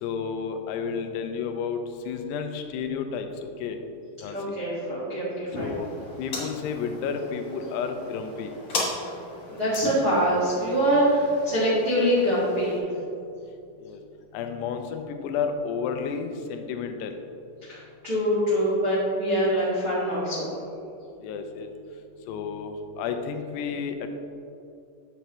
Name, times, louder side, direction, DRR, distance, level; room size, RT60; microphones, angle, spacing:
voice 1, 0.0-3.3 3.6-3.8 4.2-4.6 5.6-5.9 6.2-8.5 13.8-14.0 14.3-17.2 21.2-21.7 22.3-24.1, left 6 dB, 80° left, 6 dB, 2.5 m, -31 dB
voice 2, 4.3-5.8 9.5-12.8 17.7-17.8 18.0-20.5, equal, 85° right, -10 dB, 0.8 m, -24 dB
sound 1, 5.5-12.8, left 2 dB, 40° left, 2.3 m, -36 dB
8.2 x 8.1 x 3.0 m, 2.7 s
omnidirectional pair, 5.1 m